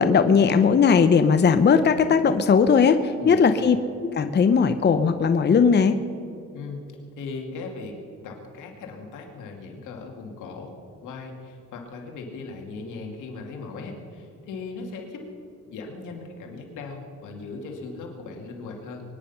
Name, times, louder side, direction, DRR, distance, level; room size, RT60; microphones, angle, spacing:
voice 1, 0.0-3.8 4.0-6.0, left 6 dB, 35° left, 9 dB, 0.8 m, -18 dB
voice 2, 6.5-6.8 7.2-8.0 8.2-10.7 11.0-15.2 15.7-19.0, left 4 dB, 85° left, 2 dB, 2.5 m, -38 dB
23.0 x 9.9 x 5.8 m, 2.5 s
cardioid pair, 90°, 30 cm